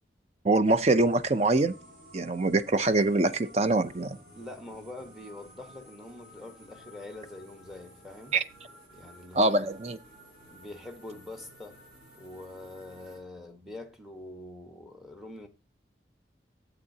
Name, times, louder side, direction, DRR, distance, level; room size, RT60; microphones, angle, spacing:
voice 1, 0.4-1.7 2.1-4.2 8.3-8.4 9.3-10.0, right 2 dB, 35° right, 0.5 m, -24 dB
sound 1, 0.6-13.2, equal, 55° right, 5.0 m, -54 dB
voice 2, 4.4-8.4 8.9-9.7 10.5-11.8 12.2-15.5, left 2 dB, ahead, 1.2 m, -44 dB
12.5 x 8.0 x 2.8 m
head